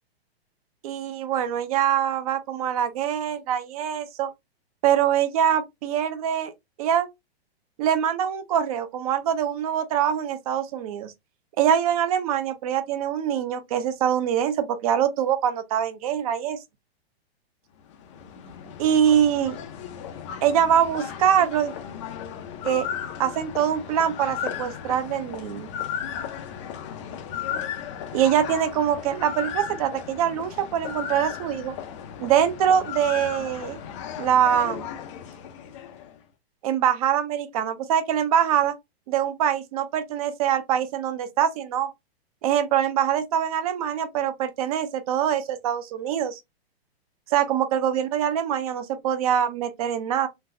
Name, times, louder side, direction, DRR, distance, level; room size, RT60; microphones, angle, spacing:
voice 1, 0.8-4.3 4.8-6.5 6.8-7.1 7.8-11.1 11.6-16.6 18.8-19.6 20.4-21.7 22.6-22.9 23.2-25.7 28.1-31.7 32.2-33.8 34.2-34.9 36.6-38.7 39.1-41.9 42.4-46.4 47.3-50.3, right 9 dB, 35° right, 0.5 m, -24 dB
sound 1, 17.8-36.2, left 8 dB, 30° left, 0.4 m, -35 dB
3.9 x 2.1 x 2.6 m
hypercardioid pair, 150°, 32 cm